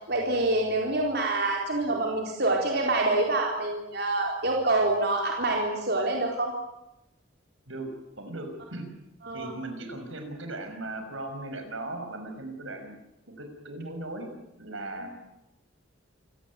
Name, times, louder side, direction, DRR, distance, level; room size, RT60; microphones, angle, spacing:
voice 1, 0.1-6.5 9.2-9.5, right 2 dB, 55° right, 0 dB, 4.3 m, -26 dB
voice 2, 8.2-8.9 9.3-13.0 13.3-14.3 14.6-15.1, right 2 dB, 75° right, 5 dB, 5.8 m, -38 dB
27.5 x 17.5 x 9.6 m, 0.91 s
head